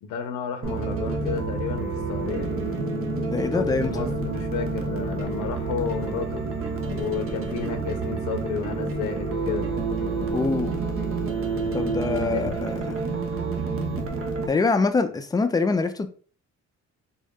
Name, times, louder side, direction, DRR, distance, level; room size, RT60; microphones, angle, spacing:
voice 1, 0.0-2.5 3.5-6.4 6.9-9.7 12.3-12.4, left 7 dB, 90° left, 0.5 m, -32 dB
sound 1, 0.6-14.5, right 3 dB, 45° right, 0.8 m, -28 dB
voice 2, 3.3-4.2 10.3-10.8 11.7-13.1 14.5-16.1, left 4 dB, 15° left, 0.4 m, -25 dB
3.6 x 2.1 x 3.6 m
cardioid pair, 90°, 30 cm